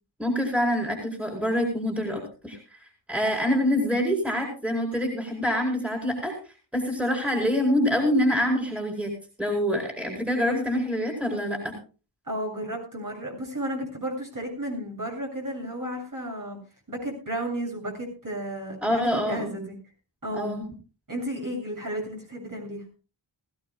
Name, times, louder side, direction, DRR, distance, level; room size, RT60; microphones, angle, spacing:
voice 1, 0.2-2.6 3.1-6.3 6.7-9.1 9.4-11.7 18.8-19.5 20.3-20.7, equal, 5° right, 1 dB, 4.6 m, -25 dB
voice 2, 12.3-16.6 16.9-19.7 20.2-20.6 21.1-22.8, right 1 dB, 40° right, -1 dB, 7.7 m, -33 dB
20.5 x 16.0 x 2.3 m, 0.35 s
wide cardioid pair, 70°, 48 cm